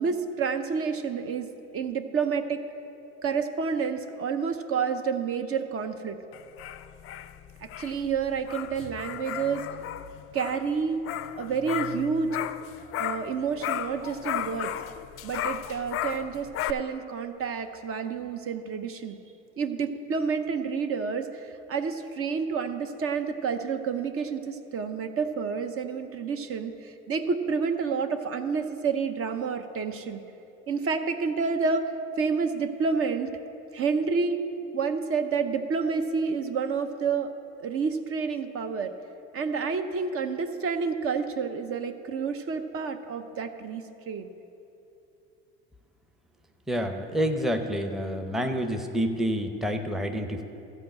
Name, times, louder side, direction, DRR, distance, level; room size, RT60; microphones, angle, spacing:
voice 1, 0.0-1.5 1.7-2.6 3.2-6.2 7.6-9.6 10.3-11.0 11.4-12.4 13.0-14.7 15.2-19.2 19.6-30.2 30.7-31.9 32.2-33.3 33.7-34.4 34.7-37.3 37.6-38.9 39.3-44.3, right 5 dB, 45° right, 8 dB, 0.7 m, -29 dB
sound 1, 6.3-13.3 13.6-16.7, left 11 dB, 45° left, 0.4 m, -35 dB
voice 2, 46.7-50.4, equal, ahead, 5 dB, 0.7 m, -28 dB
13.0 x 4.8 x 7.6 m, 2.9 s
supercardioid pair, 90°, 33 cm